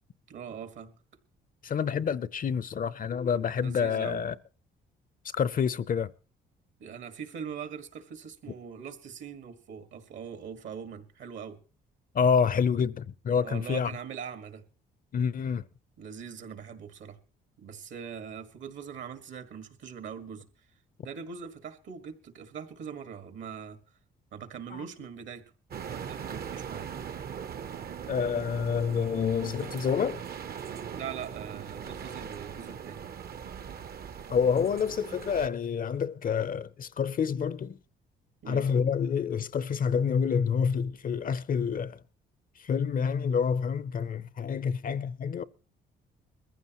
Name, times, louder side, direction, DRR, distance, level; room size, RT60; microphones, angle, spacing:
voice 1, 0.3-0.9 3.6-4.2 6.8-11.6 13.4-14.6 16.0-17.2 17.6-20.5 21.0-23.8 24.3-25.4 25.8-26.9 30.9-33.0 38.4-38.7, right 7 dB, 70° right, 1.8 m, -41 dB
voice 2, 1.6-4.4 5.3-6.1 12.1-13.9 15.1-15.6 24.7-24.8 28.1-30.2 34.3-37.8 38.5-42.0 42.6-45.4, left 6 dB, 45° left, 0.6 m, -28 dB
sound 1, 25.7-35.5, right 7 dB, 50° right, 0.8 m, -40 dB
21.5 x 15.0 x 3.0 m
cardioid pair, 90°, 20 cm